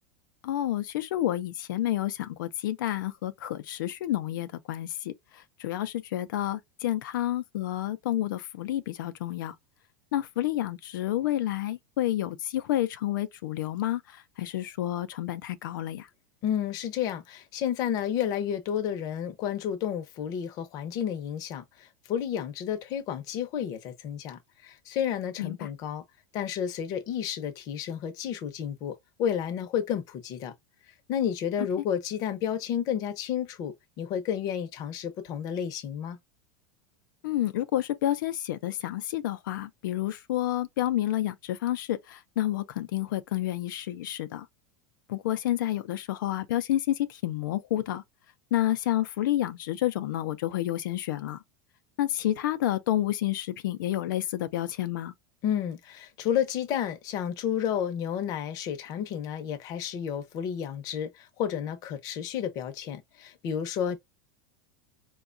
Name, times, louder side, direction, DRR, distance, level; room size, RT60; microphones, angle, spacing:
voice 1, 0.4-9.5 10.1-16.1 25.4-25.7 37.2-44.5 45.1-48.0 48.5-51.4 52.0-55.1, left 13 dB, 90° left, 0.4 m, -29 dB
voice 2, 16.4-26.0 26.3-30.5 31.1-36.2 55.4-64.0, left 9 dB, 35° left, 0.6 m, -31 dB
4.6 x 2.2 x 2.5 m
supercardioid pair, 165°, 10 cm